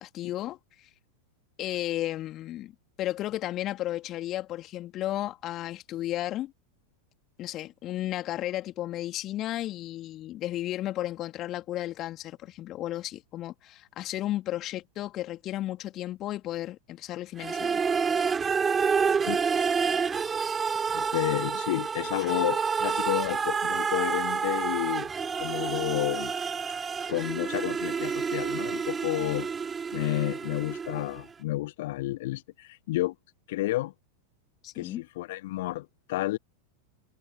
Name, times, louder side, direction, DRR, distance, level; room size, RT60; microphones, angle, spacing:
voice 1, 0.0-0.9 1.6-2.7 3.0-6.5 7.4-17.8 34.6-35.0, left 14 dB, 35° left, 2.8 m, -34 dB
sound 1, 17.4-31.2, right 6 dB, 15° right, 2.7 m, -29 dB
voice 2, 20.9-25.1 25.4-26.3 27.1-29.5 29.9-33.1 33.5-33.9 34.7-36.4, left 17 dB, 55° left, 0.6 m, -31 dB
figure-of-eight pair, 90°, 0 cm